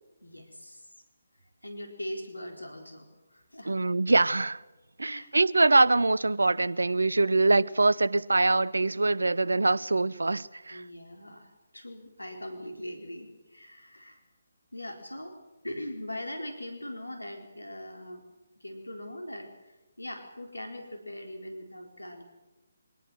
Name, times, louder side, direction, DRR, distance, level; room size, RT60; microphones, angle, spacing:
voice 1, 0.2-0.9 1.6-3.9 5.0-5.3 10.7-14.2 14.7-15.3 15.6-18.2 18.6-22.2, left 1 dB, 80° left, 4.0 m, -41 dB
voice 2, 3.7-4.6 5.0-10.8, right 2 dB, 65° right, 0.7 m, -24 dB
23.5 x 18.5 x 7.8 m
figure-of-eight pair, 145°, 0 cm